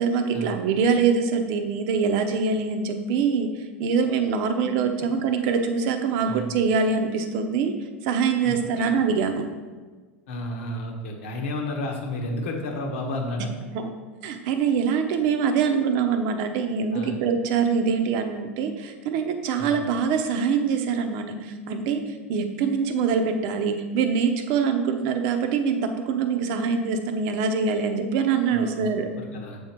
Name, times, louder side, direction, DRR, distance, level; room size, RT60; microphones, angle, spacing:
voice 1, 0.0-3.5 3.8-7.7 8.0-9.5 13.7-13.9 14.2-22.0 22.3-29.1, right 5 dB, 60° right, 6 dB, 0.7 m, -24 dB
voice 2, 8.4-8.9 10.3-13.5 16.9-17.2 19.6-19.7 28.5-29.6, left 1 dB, 75° left, 2 dB, 1.1 m, -32 dB
7.0 x 3.7 x 4.4 m, 1.4 s
hypercardioid pair, 95°, 7 cm